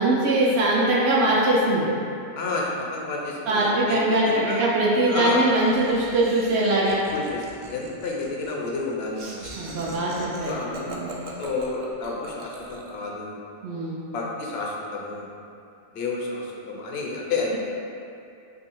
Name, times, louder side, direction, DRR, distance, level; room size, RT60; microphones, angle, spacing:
voice 1, 0.0-1.9 3.5-7.0 9.6-10.5 10.9-11.1 13.6-14.0, right 1 dB, 90° right, -5 dB, 0.9 m, -22 dB
voice 2, 2.3-4.6 4.9-5.5 7.1-9.7 10.4-10.9 11.4-13.3 14.1-15.3 15.9-17.6, left 3 dB, 80° left, -2 dB, 0.9 m, -30 dB
Laughter, 5.5-13.0, right 2 dB, 55° right, 0.6 m, -40 dB
3.0 x 2.7 x 4.4 m, 2.6 s
omnidirectional pair, 1.1 m